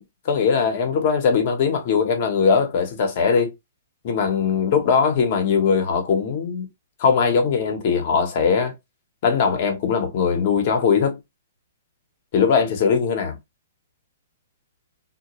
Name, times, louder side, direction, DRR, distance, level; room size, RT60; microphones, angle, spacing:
voice 1, 0.0-3.5 4.0-6.7 7.0-8.7 9.2-11.2 12.3-13.4, left 6 dB, 45° left, 0.8 m, -20 dB
2.2 x 2.1 x 2.8 m
hypercardioid pair, 150°, 0 cm